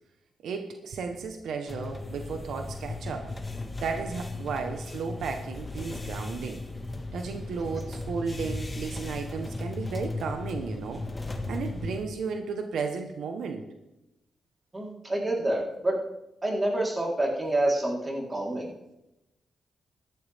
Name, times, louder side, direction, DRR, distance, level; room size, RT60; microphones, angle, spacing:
voice 1, 0.4-3.3 3.8-6.6 7.1-13.6, right 5 dB, 85° right, 5 dB, 1.2 m, -34 dB
sound 1, 1.7-12.1, left 2 dB, 20° left, 1.8 m, -36 dB
voice 2, 14.7-15.9 16.4-18.7, right 1 dB, 25° right, -2 dB, 3.8 m, -27 dB
14.5 x 12.5 x 3.6 m, 0.92 s
cardioid pair, 90°, 0 cm